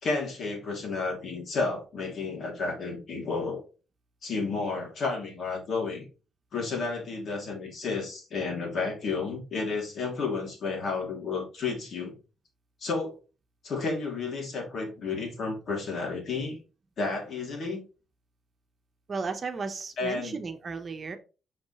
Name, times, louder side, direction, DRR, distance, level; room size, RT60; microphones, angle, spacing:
voice 1, 0.0-3.6 4.2-6.1 6.5-12.1 12.8-13.2 13.6-16.6 17.0-17.8 20.0-20.4, left 4 dB, 60° left, 3.1 m, -31 dB
voice 2, 19.1-21.2, right 4 dB, 40° right, 1.1 m, -34 dB
5.8 x 5.2 x 3.2 m
cardioid pair, 90°, 0 cm